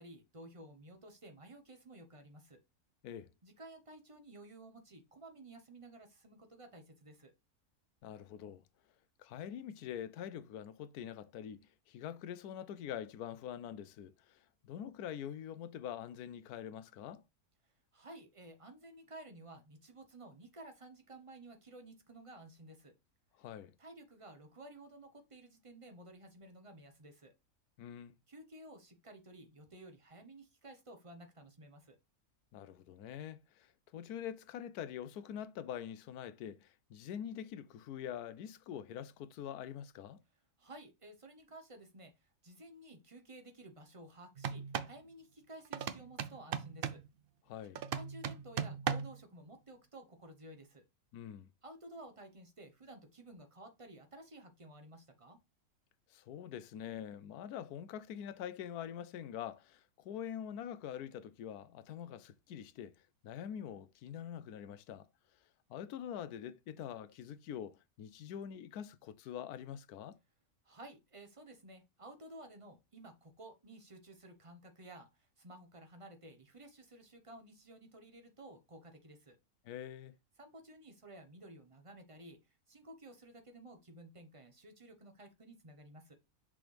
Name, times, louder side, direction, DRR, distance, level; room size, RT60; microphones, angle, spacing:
voice 1, 0.0-2.6 3.4-7.3 17.9-22.9 23.8-27.3 28.3-32.0 40.6-47.0 47.9-50.8 51.6-55.4 70.6-79.4 80.4-86.1, right 1 dB, 25° right, 0.9 m, -54 dB
voice 2, 8.0-8.6 9.2-17.2 23.4-23.7 27.8-28.1 32.5-40.2 47.5-47.8 51.1-51.5 56.1-62.9 63.2-65.1 65.7-70.2 79.6-80.1, left 9 dB, 90° left, 1.1 m, -45 dB
sound 1, 44.4-45.0 45.7-47.1 47.8-49.2, right 7 dB, 80° right, 0.5 m, -38 dB
6.1 x 4.9 x 3.3 m
omnidirectional pair, 1.6 m